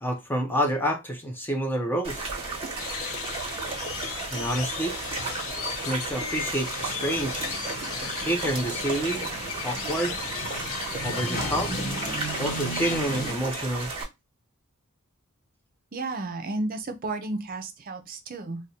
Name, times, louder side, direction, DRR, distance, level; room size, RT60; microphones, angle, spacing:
voice 1, 0.0-2.3 4.3-5.0 5.8-7.5 8.3-9.2 9.6-10.2 11.0-11.7 12.4-13.9, right 1 dB, 10° left, 0.5 m, -28 dB
sound 1, 2.0-14.0, right 3 dB, 25° right, 1.2 m, -34 dB
sound 2, 2.8-13.0, left 8 dB, 75° left, 0.4 m, -36 dB
sound 3, 6.7-13.3, right 1 dB, 40° left, 1.0 m, -36 dB
voice 2, 15.9-18.6, right 2 dB, 40° right, 0.5 m, -32 dB
4.1 x 2.1 x 2.7 m
head